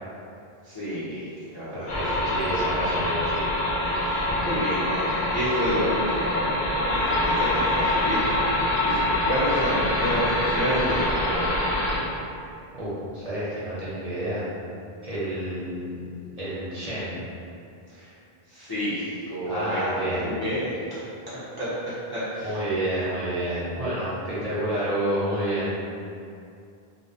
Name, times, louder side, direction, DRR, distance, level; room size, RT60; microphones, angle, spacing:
voice 1, 0.6-2.5 3.8-11.5 17.9-18.1 18.5-22.6, equal, 30° left, -13 dB, 0.4 m, -30 dB
voice 2, 1.7-3.4 12.7-14.4 15.0-16.1 16.4-17.2 19.5-20.3 22.4-25.7, right 1 dB, 40° right, -11 dB, 0.7 m, -29 dB
sound 1, 1.9-12.0, left 1 dB, 55° left, 0.8 m, -25 dB
2.6 x 2.0 x 2.6 m, 2.5 s
omnidirectional pair, 1.0 m